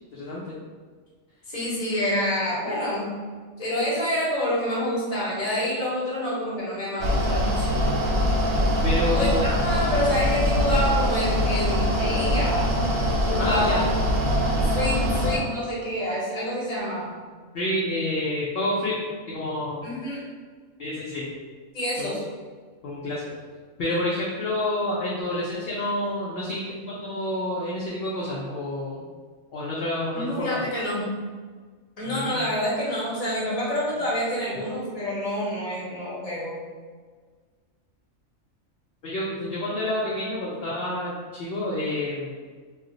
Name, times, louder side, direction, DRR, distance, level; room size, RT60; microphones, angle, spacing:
voice 1, 0.1-0.6 8.8-9.5 13.4-13.9 17.5-19.0 19.3-19.9 20.8-21.3 22.0-22.1 22.8-23.3 23.8-29.0 29.5-30.6 32.1-32.4 39.0-42.3, left 1 dB, 65° left, -6 dB, 0.6 m, -28 dB
voice 2, 1.5-3.1 3.6-7.7 9.1-12.8 13.3-13.8 14.6-17.1 19.8-20.2 21.7-22.2 30.1-31.1 32.0-36.6, left 1 dB, 30° left, -7 dB, 0.8 m, -27 dB
Mechanical fan, 7.0-15.4, equal, 75° right, 0.9 m, -23 dB
2.4 x 2.1 x 3.7 m, 1.5 s
omnidirectional pair, 1.4 m